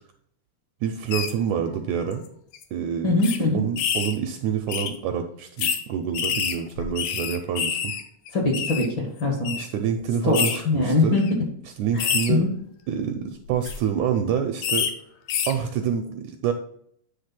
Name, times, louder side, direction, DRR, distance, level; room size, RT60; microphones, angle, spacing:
voice 1, 0.8-2.2 2.7-7.9 9.6-11.2 11.6-12.5 12.9-14.9 15.5-16.5, right 8 dB, 85° right, 6 dB, 1.7 m, -27 dB
sound 1, 1.1-1.3 2.1-2.3 2.5-2.6 3.2-3.4 3.8-4.2 4.7-4.9 5.6-5.8 6.1-8.0 8.3-8.9 9.4-9.6 10.3-10.6 11.1-11.3 12.0-12.3 13.5-13.8 14.6-14.9 15.3-15.5, left 7 dB, 80° left, 2.3 m, -26 dB
voice 2, 3.0-3.6 8.3-9.5 10.2-10.4 10.6-11.2 11.9-12.5, left 3 dB, 50° left, 0 dB, 1.5 m, -22 dB
9.3 x 3.3 x 5.8 m, 0.67 s
omnidirectional pair, 3.8 m